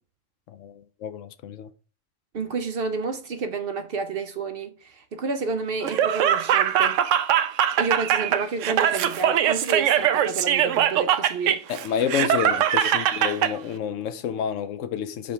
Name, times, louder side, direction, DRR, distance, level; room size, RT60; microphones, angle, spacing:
voice 1, 0.5-1.7 11.7-15.3, left 8 dB, 80° left, 0.9 m, -29 dB
voice 2, 2.3-7.0 7.8-11.6, right 4 dB, 55° right, 0.7 m, -30 dB
Laughter, 5.8-13.5, right 10 dB, 75° right, 0.9 m, -22 dB
5.1 x 3.4 x 5.6 m
omnidirectional pair, 1.3 m